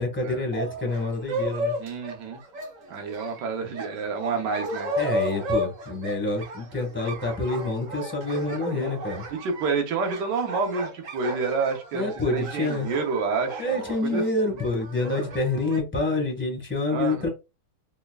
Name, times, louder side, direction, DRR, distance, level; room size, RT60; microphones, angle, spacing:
voice 1, 0.0-1.7 5.0-9.2 11.9-12.9 13.6-17.3, left 2 dB, 5° left, 2 dB, 1.4 m, -27 dB
sound 1, 0.5-15.8, equal, 50° right, 1.2 m, -34 dB
voice 2, 1.8-2.4 2.9-4.9 8.7-8.9 9.3-14.2 16.9-17.3, right 4 dB, 70° right, 3 dB, 1.5 m, -29 dB
4.4 x 3.4 x 2.3 m, 0.27 s
omnidirectional pair, 1.9 m